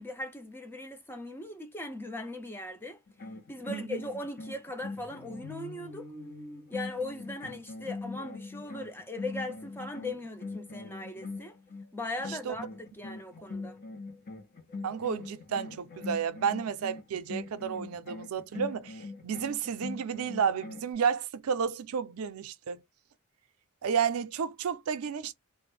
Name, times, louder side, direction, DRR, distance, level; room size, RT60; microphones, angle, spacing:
voice 1, 0.0-3.0 3.5-6.1 6.7-11.6 11.9-13.8, left 2 dB, 10° left, 0.4 m, -39 dB
sound 1, 3.1-11.9 12.2-20.9, left 3 dB, 45° left, 0.7 m, -42 dB
voice 2, 3.7-4.0 12.3-12.6 13.4-13.5 14.8-22.8 23.8-25.3, right 7 dB, 85° right, 0.4 m, -32 dB
2.4 x 2.1 x 3.0 m
head